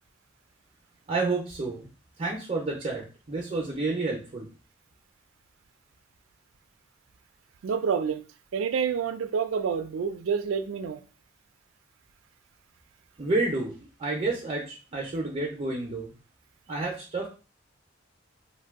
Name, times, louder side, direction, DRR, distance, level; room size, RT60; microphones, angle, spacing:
voice 1, 1.1-1.9 2.2-4.5 13.2-16.1 16.7-17.3, right 3 dB, 35° right, 0.5 m, -30 dB
voice 2, 7.6-8.2 8.5-11.0, right 6 dB, 90° right, 0.4 m, -28 dB
2.6 x 2.2 x 3.5 m
head